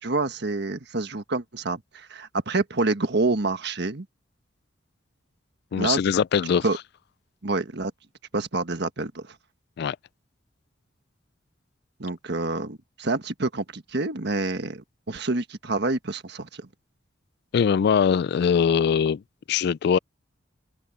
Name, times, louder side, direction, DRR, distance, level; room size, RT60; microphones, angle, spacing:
voice 1, 0.0-4.1 5.8-6.0 6.6-6.8 7.4-7.9 8.3-9.3 12.0-16.7, right 3 dB, 60° right, 1.5 m, -27 dB
voice 2, 5.7-6.6 9.8-10.0 17.5-19.2 19.5-20.0, left 7 dB, 60° left, 0.3 m, -21 dB
open air
head